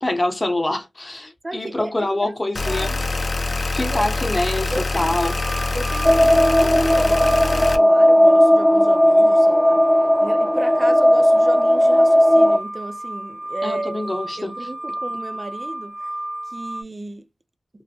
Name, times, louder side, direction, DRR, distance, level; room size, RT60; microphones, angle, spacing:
voice 1, 0.0-3.1 3.7-5.4 13.6-14.7, left 1 dB, 30° left, 0.9 m, -25 dB
voice 2, 1.4-2.3 2.7-3.0 3.8-4.3 4.7-5.1 5.7-9.8 10.2-14.1 14.4-15.9 16.5-17.2, right 2 dB, 40° right, 0.4 m, -33 dB
sound 1, 2.6-7.8, left 3 dB, 55° left, 0.4 m, -25 dB
sound 2, 5.2-16.8, right 1 dB, 65° right, 0.7 m, -32 dB
sound 3, 6.0-12.6, equal, ahead, 0.8 m, -15 dB
3.1 x 2.1 x 2.8 m
cardioid pair, 45°, 0 cm